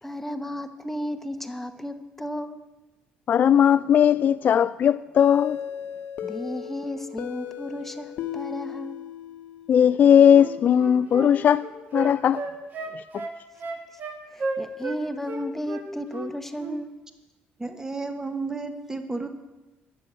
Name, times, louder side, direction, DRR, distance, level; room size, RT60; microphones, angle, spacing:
voice 1, 0.0-2.7 6.2-9.0 14.3-16.9, equal, 5° left, 0.9 m, -33 dB
voice 2, 3.3-5.6 9.7-12.4, left 9 dB, 50° left, 0.3 m, -18 dB
sound 1, 5.2-9.9, left 9 dB, 70° left, 0.9 m, -35 dB
Wind instrument woodwind instrument, 10.3-15.0 15.2-16.3 16.6-16.8, right 3 dB, 50° right, 1.9 m, -33 dB
voice 3, 17.6-19.3, right 3 dB, 15° right, 1.3 m, -32 dB
11.0 x 7.6 x 8.6 m
cardioid pair, 95°, 4 cm